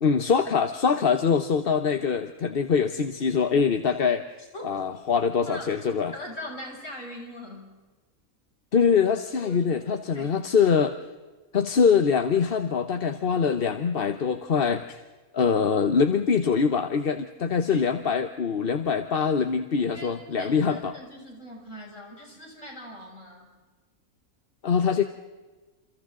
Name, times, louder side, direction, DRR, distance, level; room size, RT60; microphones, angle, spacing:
voice 1, 0.0-4.2 4.6-6.1 8.7-11.0 11.5-15.0 15.3-20.9 24.6-25.0, left 6 dB, 45° left, 8 dB, 1.1 m, -23 dB
voice 2, 5.5-7.7 9.4-10.7 17.7-17.8 19.9-23.5, left 1 dB, 60° left, -1 dB, 7.1 m, -42 dB
29.0 x 29.0 x 3.8 m, 1.2 s
omnidirectional pair, 1.5 m